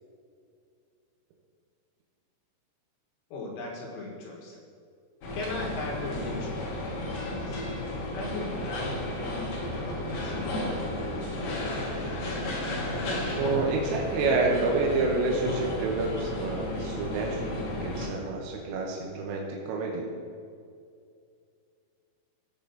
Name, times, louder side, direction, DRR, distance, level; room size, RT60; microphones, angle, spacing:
voice 1, 3.3-4.6 5.3-6.7 7.2-10.8, left 2 dB, 75° left, -2 dB, 3.8 m, -38 dB
sound 1, 5.2-18.1, left 1 dB, 60° left, 2.4 m, -33 dB
voice 2, 13.4-20.1, right 3 dB, 85° right, -1 dB, 3.4 m, -29 dB
16.0 x 7.8 x 2.8 m, 2.3 s
omnidirectional pair, 6.0 m